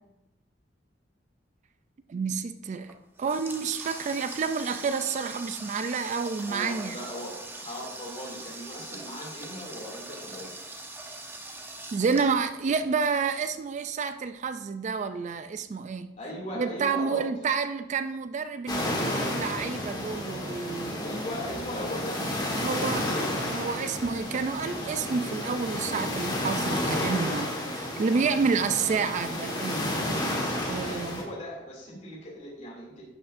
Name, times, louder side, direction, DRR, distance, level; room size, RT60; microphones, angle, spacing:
voice 1, 2.1-7.0 11.9-16.1 16.6-21.0 22.6-29.9 30.7-31.2, right 5 dB, 40° right, 0.3 m, -29 dB
Water tap faucet, 2.8-13.0, right 2 dB, 10° right, 0.8 m, -42 dB
voice 2, 6.4-10.5 16.2-17.2 21.0-22.2 30.8-33.0, left 1 dB, 40° left, 2.5 m, -38 dB
sound 1, 18.7-31.2, left 1 dB, 25° left, 1.5 m, -31 dB
11.5 x 6.2 x 2.5 m
head